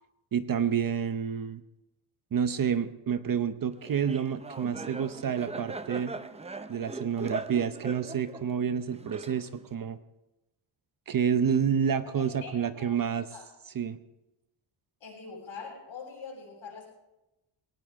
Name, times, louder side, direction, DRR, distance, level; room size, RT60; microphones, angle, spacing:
voice 1, 0.3-1.6 2.3-6.1 6.7-10.0 11.1-13.3 13.7-14.0, right 7 dB, 45° right, 12 dB, 0.8 m, -29 dB
Laughter, 3.9-9.7, right 3 dB, 15° right, 0.5 m, -40 dB
voice 2, 12.0-13.0 13.3-13.5 15.0-16.9, left 5 dB, 70° left, -2 dB, 7.6 m, -44 dB
21.0 x 18.5 x 3.6 m, 0.95 s
wide cardioid pair, 180°, 48 cm